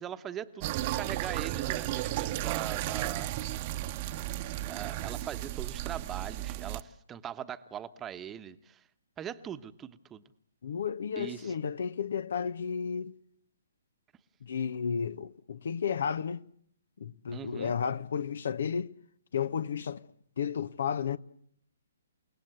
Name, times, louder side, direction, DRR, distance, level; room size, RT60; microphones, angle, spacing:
voice 1, 0.0-3.3 4.6-8.8 9.2-10.2 11.2-11.5 17.3-17.7, right 9 dB, 15° right, 1.2 m, -41 dB
sound 1, 0.6-6.8, right 14 dB, 40° right, 1.1 m, -34 dB
voice 2, 10.6-13.1 14.4-16.4 17.0-18.9 19.3-20.0 20.4-21.2, left 7 dB, 65° left, 1.0 m, -32 dB
29.5 x 18.5 x 7.9 m
hypercardioid pair, 135°, 0 cm